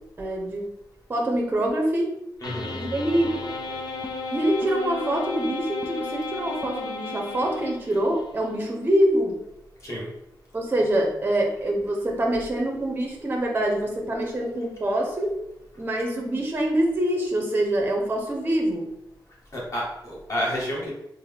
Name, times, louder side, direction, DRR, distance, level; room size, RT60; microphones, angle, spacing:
voice 1, 0.2-0.7 1.1-2.2 2.7-3.3 4.3-9.4 10.5-15.3 15.8-18.9, right 1 dB, 25° right, 0 dB, 0.6 m, -25 dB
sound 1, 2.4-8.2, left 3 dB, 60° left, 0.5 m, -34 dB
voice 2, 2.4-2.8 9.8-10.1 19.5-20.9, equal, 40° left, -4 dB, 1.2 m, -30 dB
4.2 x 2.0 x 3.3 m, 0.84 s
wide cardioid pair, 145°, 8 cm